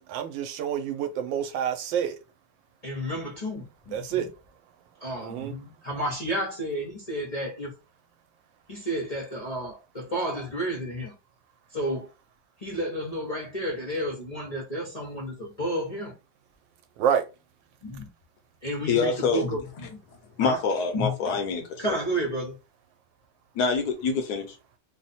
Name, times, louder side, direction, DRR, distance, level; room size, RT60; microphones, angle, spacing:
voice 1, 0.0-2.2 3.9-4.3 5.2-5.5 17.0-17.2, right 9 dB, 90° right, 1.3 m, -28 dB
voice 2, 2.8-4.3 5.0-7.7 8.7-11.1 11.7-12.1 12.6-16.1 17.8-18.1 18.6-20.0 20.4-20.6 20.9-21.1 21.8-22.6, equal, 35° left, 0.6 m, -31 dB
voice 3, 18.9-19.5 20.4-22.0 23.5-24.6, left 5 dB, 70° left, 1.1 m, -26 dB
3.2 x 2.1 x 4.1 m
omnidirectional pair, 2.0 m